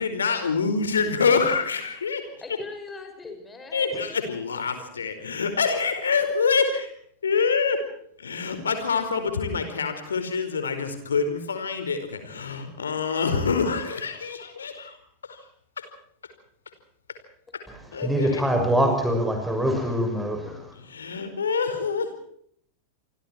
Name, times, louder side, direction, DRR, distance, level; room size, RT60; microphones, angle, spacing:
voice 1, 0.0-2.3 3.7-6.9 7.2-7.8 8.2-15.0 15.2-15.4 15.8-15.9 17.9-18.4 20.8-22.1, left 5 dB, 70° left, 9 dB, 4.8 m, -26 dB
voice 2, 2.4-4.1 18.0-18.9, left 3 dB, 15° left, 5 dB, 6.1 m, -41 dB
voice 3, 18.0-20.7, equal, 5° right, 5 dB, 6.6 m, -24 dB
28.0 x 25.0 x 4.5 m, 0.64 s
figure-of-eight pair, 90°, 0 cm